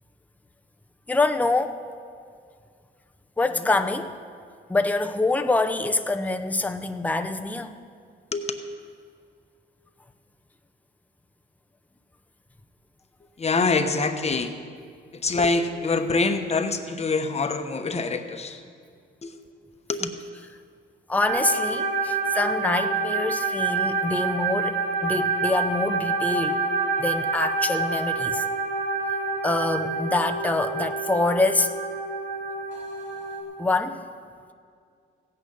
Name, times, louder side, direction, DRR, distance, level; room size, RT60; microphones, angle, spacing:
voice 1, 1.1-1.8 3.4-4.2 4.7-7.8 20.0-20.1 21.1-26.6 27.0-28.4 29.4-31.7 33.6-34.0, left 2 dB, 10° left, 6 dB, 0.6 m, -25 dB
voice 2, 8.3-8.6 13.4-14.6 15.1-18.6 19.2-19.4 19.9-20.2, left 3 dB, 30° left, 7 dB, 1.0 m, -25 dB
sound 1, 21.3-33.4, right 4 dB, 70° right, 2.1 m, -27 dB
16.0 x 9.1 x 5.5 m, 2.2 s
cardioid pair, 90°, 20 cm